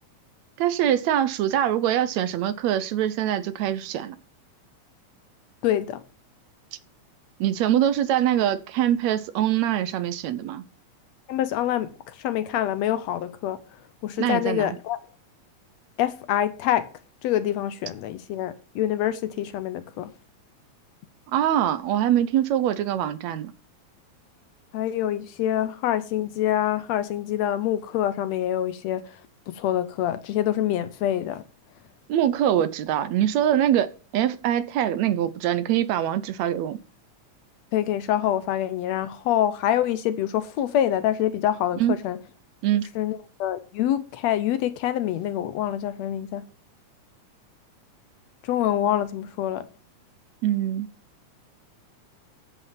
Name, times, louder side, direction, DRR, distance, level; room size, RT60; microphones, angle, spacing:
voice 1, 0.6-4.2 7.4-10.6 14.2-14.8 21.3-23.5 32.1-36.8 41.8-42.0 42.6-42.9 50.4-50.9, right 11 dB, 75° right, 2.0 m, -23 dB
voice 2, 5.6-6.0 11.3-13.6 14.0-15.0 16.0-16.9 17.2-20.1 24.7-29.1 29.5-31.4 37.7-42.2 43.0-46.5 48.4-49.7, left 11 dB, 75° left, 1.8 m, -26 dB
9.0 x 8.0 x 5.8 m
omnidirectional pair, 3.4 m